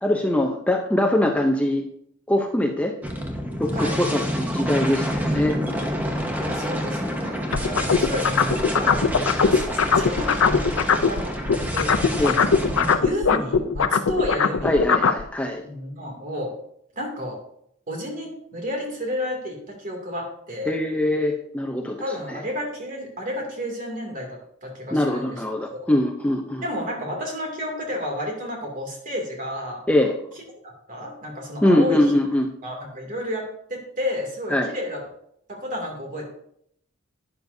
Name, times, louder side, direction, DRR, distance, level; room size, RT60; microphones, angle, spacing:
voice 1, 0.0-1.9 2.3-2.9 3.6-5.6 12.2-12.3 14.6-15.6 20.7-22.0 22.3-22.4 24.9-26.6 29.9-30.1 31.6-32.5 34.5-34.7, left 1 dB, 5° left, 2 dB, 0.7 m, -22 dB
sound 1, 3.0-12.9, equal, 10° right, 1.2 m, -28 dB
voice 2, 6.4-9.6 9.9-10.6 11.1-11.4 11.7-12.4 13.0-14.7 15.6-16.5 17.0-17.4 17.9-20.7 22.0-25.4 25.7-25.9 26.6-29.8 30.9-32.0 32.6-35.0 35.5-36.2, left 1 dB, 40° right, 1 dB, 2.6 m, -31 dB
sound 2, 7.5-11.2 11.5-15.2, left 5 dB, 80° left, 0.6 m, -19 dB
12.0 x 9.6 x 2.7 m, 0.72 s
head